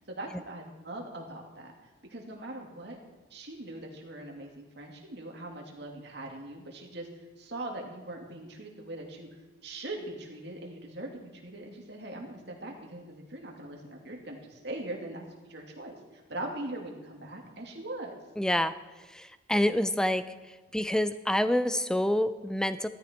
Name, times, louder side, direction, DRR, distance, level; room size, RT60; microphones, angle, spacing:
voice 1, 0.1-1.7 2.1-3.0 3.3-9.3 9.6-18.1, right 1 dB, 60° right, 1 dB, 2.6 m, -41 dB
voice 2, 18.4-18.7 19.1-20.2 20.7-22.9, left 1 dB, 5° left, 12 dB, 0.5 m, -27 dB
16.5 x 13.5 x 4.5 m, 1.2 s
head